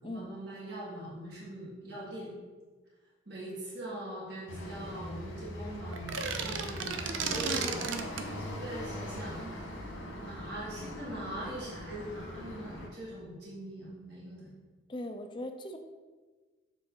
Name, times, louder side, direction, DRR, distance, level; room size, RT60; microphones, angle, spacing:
voice 1, 0.0-2.3 3.2-7.8 8.4-9.4 10.2-14.5, right 1 dB, 60° right, -7 dB, 1.7 m, -42 dB
sound 1, 4.5-12.9, left 1 dB, 85° left, 1.2 m, -41 dB
sound 2, 5.9-8.3, right 5 dB, 85° right, 0.6 m, -34 dB
voice 2, 14.9-15.8, left 1 dB, 25° left, 5 dB, 0.4 m, -39 dB
7.3 x 3.9 x 3.8 m, 1.3 s
head